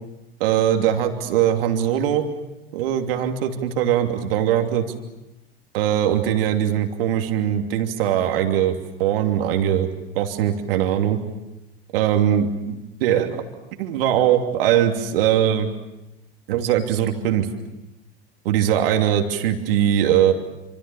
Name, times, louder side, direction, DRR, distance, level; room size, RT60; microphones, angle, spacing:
voice 1, 0.4-2.2 2.7-4.9 5.7-9.9 10.1-11.2 11.9-13.4 13.8-15.7 16.5-17.5 18.4-20.3, right 10 dB, 70° right, 4 dB, 3.0 m, -21 dB
27.5 x 26.5 x 7.1 m, 0.95 s
hypercardioid pair, 85°, 30 cm